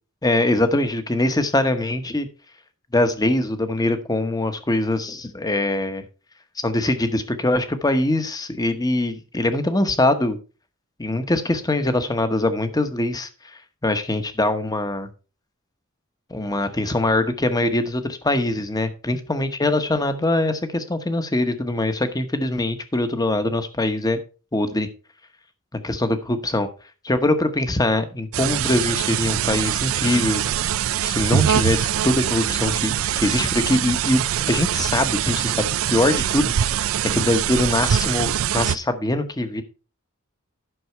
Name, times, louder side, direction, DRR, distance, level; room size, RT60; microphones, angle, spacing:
voice 1, 0.2-2.3 2.9-6.0 6.6-10.4 11.0-13.3 13.8-15.1 16.3-24.2 24.5-24.9 25.8-26.7 27.0-30.4 31.0-34.2 34.5-36.9 37.1-39.6, left 1 dB, 20° left, 9 dB, 1.0 m, -22 dB
sound 1, 28.3-38.8, right 10 dB, 70° right, 0.4 m, -23 dB
11.5 x 6.2 x 4.5 m, 0.34 s
head